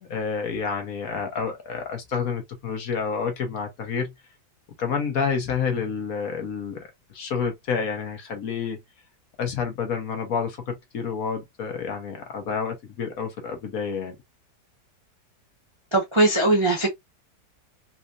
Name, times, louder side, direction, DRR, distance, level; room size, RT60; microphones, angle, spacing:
voice 1, 0.0-4.1 4.8-8.8 9.4-14.1, left 6 dB, 60° left, 1.4 m, -29 dB
voice 2, 15.9-16.9, right 2 dB, 20° right, 0.9 m, -20 dB
4.1 x 2.5 x 2.4 m
omnidirectional pair, 1.8 m